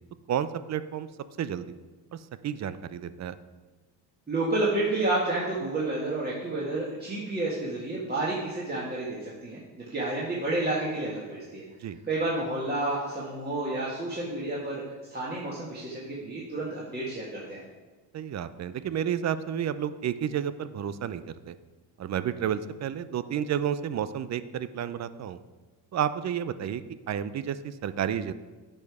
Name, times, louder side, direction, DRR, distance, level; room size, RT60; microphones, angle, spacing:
voice 1, 0.3-1.1 1.4-1.7 2.1-3.4 11.8-12.0 18.1-21.5 22.0-25.4 25.9-28.3, right 9 dB, 40° right, 14 dB, 0.5 m, -31 dB
voice 2, 4.3-9.6 9.9-11.6 12.1-14.8 15.1-17.6, right 2 dB, 20° right, -6 dB, 1.9 m, -30 dB
8.8 x 5.4 x 4.8 m, 1.3 s
supercardioid pair, 80°, 44 cm